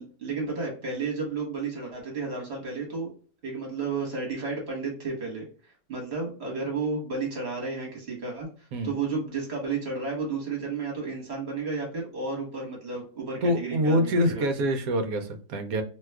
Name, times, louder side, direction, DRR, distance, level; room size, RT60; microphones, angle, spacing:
voice 1, 0.0-3.1 3.4-5.5 5.9-8.5 8.8-14.5, right 4 dB, 40° right, 0 dB, 1.3 m, -32 dB
voice 2, 13.4-15.8, equal, 70° right, 6 dB, 0.9 m, -25 dB
2.8 x 2.3 x 3.2 m, 0.41 s
omnidirectional pair, 1.8 m